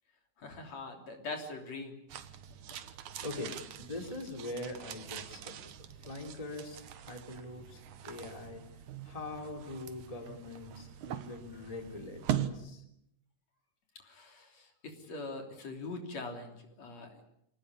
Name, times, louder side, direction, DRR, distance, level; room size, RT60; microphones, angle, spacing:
voice 1, 0.4-2.0 14.0-17.2, left 3 dB, 60° left, 4 dB, 4.4 m, -43 dB
sound 1, 2.1-12.5, right 10 dB, 80° right, 2.7 m, -42 dB
voice 2, 3.2-5.7 6.0-8.6 9.0-12.8, left 2 dB, 10° left, 4 dB, 3.1 m, -43 dB
25.5 x 18.5 x 9.9 m, 0.80 s
omnidirectional pair, 3.5 m